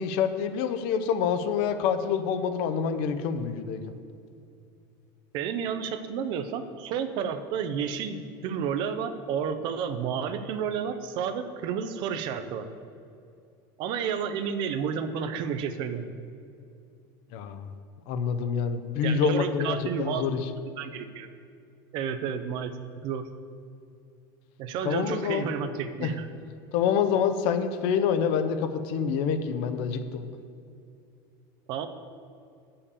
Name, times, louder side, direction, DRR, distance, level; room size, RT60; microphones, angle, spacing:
voice 1, 0.0-4.0 17.3-17.7 18.1-20.5 24.8-25.5 26.0-26.1 26.7-30.3, left 7 dB, 55° left, 9 dB, 0.6 m, -27 dB
voice 2, 5.3-12.7 13.8-16.1 19.0-20.3 20.6-21.3 21.9-22.7 23.0-23.3 24.6-26.3 31.7-31.9, right 7 dB, 40° right, 10 dB, 0.5 m, -31 dB
8.3 x 5.7 x 6.8 m, 2.5 s
cardioid pair, 165°, 12 cm